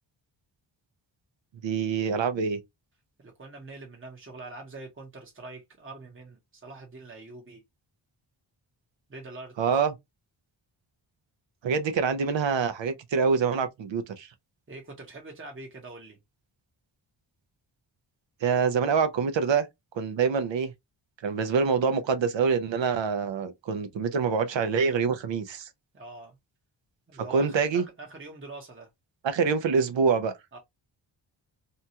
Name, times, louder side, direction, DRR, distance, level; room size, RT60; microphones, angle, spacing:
voice 1, 1.6-2.6 9.6-9.9 11.6-14.3 18.4-19.7 19.9-20.7 21.2-25.7 27.3-27.9 29.2-30.3, right 5 dB, 65° right, 0.7 m, -25 dB
voice 2, 3.2-7.6 9.1-9.5 14.7-16.2 25.9-26.4 27.1-28.9 30.5-30.6, right 2 dB, 25° right, 0.9 m, -44 dB
2.8 x 2.3 x 2.7 m
cardioid pair, 70°, 48 cm